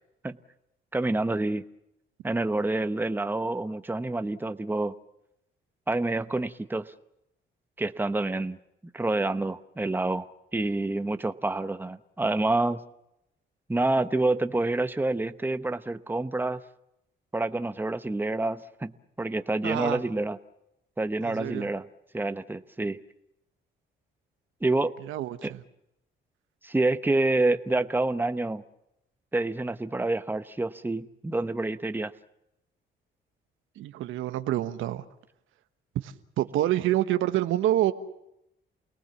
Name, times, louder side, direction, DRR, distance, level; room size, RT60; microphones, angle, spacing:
voice 1, 0.9-1.6 2.2-4.9 5.9-6.9 7.8-8.6 8.9-10.3 10.5-12.8 13.7-16.6 17.3-18.9 19.2-20.4 21.0-21.9 22.1-23.0 24.6-24.9 25.4-25.5 26.6-28.6 29.3-32.1, right 2 dB, 10° right, 1.0 m, -27 dB
voice 2, 19.6-20.0 21.2-21.7 25.1-25.6 33.8-35.0 35.9-37.9, right 13 dB, 85° right, 1.4 m, -27 dB
29.0 x 19.0 x 7.2 m
cardioid pair, 90°, 20 cm